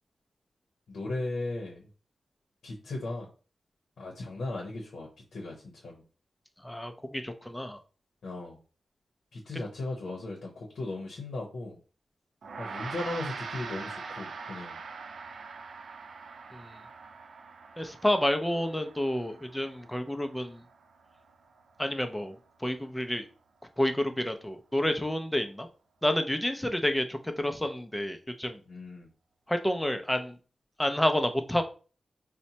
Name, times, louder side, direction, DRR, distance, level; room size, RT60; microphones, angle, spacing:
voice 1, 0.9-1.9 2.6-3.3 4.0-6.0 8.2-8.6 9.3-11.8 12.6-14.8 28.7-29.1, left 2 dB, 85° left, -1 dB, 0.7 m, -37 dB
voice 2, 6.6-7.8 9.5-9.6 16.5-16.8 17.8-20.6 21.8-22.3 22.6-23.2 23.8-25.7 26.0-28.6 29.5-30.4 30.8-31.6, left 1 dB, 10° left, 7 dB, 0.5 m, -29 dB
Gong, 12.4-22.0, right 4 dB, 80° right, 0.4 m, -43 dB
4.1 x 2.1 x 2.7 m, 0.36 s
wide cardioid pair, 85°, 0 cm